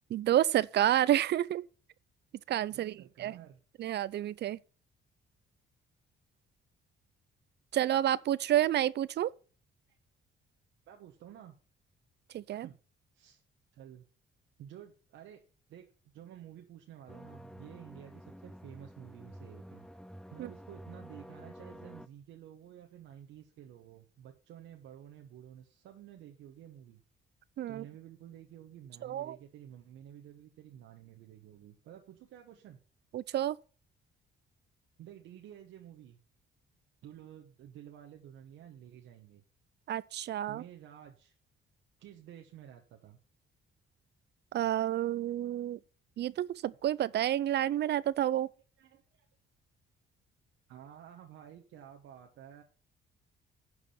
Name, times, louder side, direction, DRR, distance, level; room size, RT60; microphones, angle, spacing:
voice 1, 0.1-1.6 2.5-3.4 3.8-4.6 7.7-9.3 12.3-12.7 20.4-20.5 27.6-27.8 29.0-29.4 33.1-33.6 39.9-40.6 44.5-45.8 46.2-48.5, right 12 dB, 60° right, 0.4 m, -29 dB
voice 2, 2.7-3.6 9.9-10.0 10.9-11.6 12.5-12.8 13.1-13.4 13.7-14.1 14.6-15.4 15.7-15.9 16.1-19.9 20.3-27.0 27.7-32.8 35.0-36.2 37.0-39.4 40.5-41.3 42.0-43.2 48.8-49.3 50.7-52.6, right 10 dB, 85° right, 1.1 m, -51 dB
sound 1, 17.1-22.1, equal, 5° left, 0.6 m, -50 dB
11.0 x 4.8 x 5.5 m
cardioid pair, 90°, 20 cm